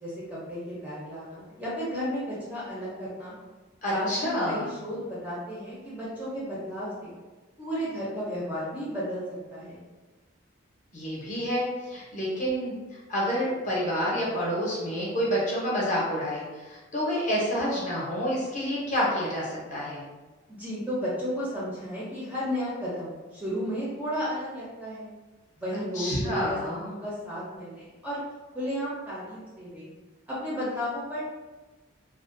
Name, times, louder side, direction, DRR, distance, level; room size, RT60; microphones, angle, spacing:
voice 1, 0.0-3.4 3.9-7.2 7.6-9.2 9.5-9.9 20.5-25.1 25.6-28.2 28.5-29.9 30.3-31.3, equal, 10° right, -8 dB, 0.5 m, -33 dB
voice 2, 3.8-4.7 10.9-20.0 25.9-26.9, equal, 35° left, -6 dB, 0.6 m, -28 dB
2.4 x 2.1 x 2.4 m, 1.2 s
head